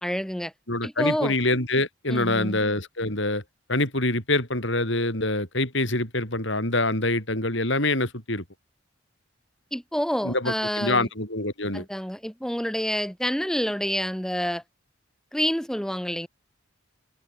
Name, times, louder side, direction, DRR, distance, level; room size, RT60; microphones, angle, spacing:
voice 1, 0.0-0.5 0.8-1.4 2.1-2.6 9.7-11.1 11.7-14.6 15.3-16.3, equal, ahead, 1.1 m, -28 dB
voice 2, 0.7-3.4 3.7-8.4 10.2-11.8, left 2 dB, 60° left, 7.9 m, -25 dB
head